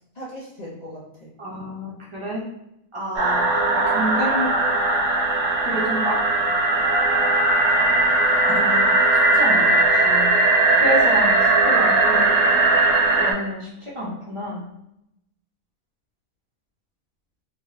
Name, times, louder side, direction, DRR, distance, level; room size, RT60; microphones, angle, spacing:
voice 1, 0.2-1.3 3.0-3.1 5.7-5.8 8.1-8.3 10.6-11.0, equal, 75° left, -5 dB, 0.3 m, -38 dB
voice 2, 1.4-2.4 2.9-4.5 5.6-6.2 8.4-9.0 9.3-10.3 10.8-12.4 13.2-14.6, equal, 35° right, -5 dB, 0.5 m, -29 dB
sound 1, 3.2-13.3, right 2 dB, 65° right, 1.1 m, -18 dB
4.5 x 2.1 x 2.4 m, 0.83 s
omnidirectional pair, 1.5 m